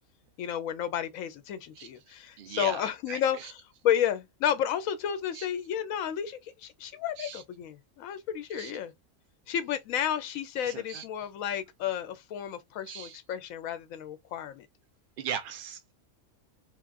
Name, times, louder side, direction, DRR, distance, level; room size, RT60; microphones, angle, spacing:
voice 1, 0.4-8.9 9.5-14.7, left 9 dB, 85° left, 1.0 m, -32 dB
voice 2, 2.4-3.5 5.3-5.5 7.2-7.4 8.6-8.7 10.6-11.0 12.9-13.2 15.2-15.9, right 8 dB, 65° right, 0.5 m, -38 dB
3.4 x 2.4 x 2.3 m
omnidirectional pair, 1.4 m